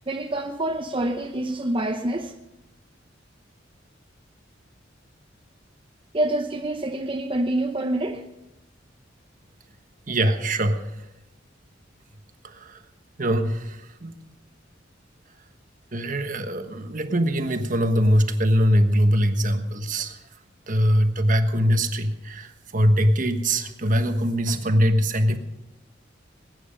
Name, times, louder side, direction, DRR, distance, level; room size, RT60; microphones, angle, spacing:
voice 1, 0.1-2.3 6.1-8.2, right 1 dB, 30° right, 3 dB, 0.8 m, -26 dB
voice 2, 10.1-10.8 12.4-12.8 13.2-14.1 15.9-20.2 20.7-25.4, equal, 45° right, 7 dB, 1.3 m, -22 dB
20.5 x 9.5 x 5.3 m, 0.90 s
head